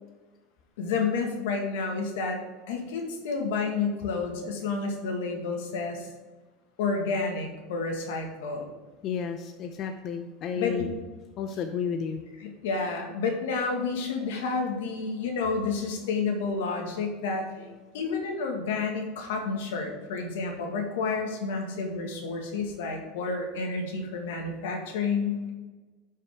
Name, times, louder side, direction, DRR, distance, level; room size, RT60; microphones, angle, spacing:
voice 1, 0.8-2.4 2.7-6.1 6.8-8.7 10.5-10.9 12.4-17.5 17.9-25.5, left 4 dB, 85° left, 2 dB, 1.9 m, -30 dB
voice 2, 9.0-10.9 11.4-12.2, left 7 dB, 40° left, 5 dB, 0.7 m, -32 dB
11.0 x 5.6 x 3.6 m, 1.3 s
supercardioid pair, 140°, 0 cm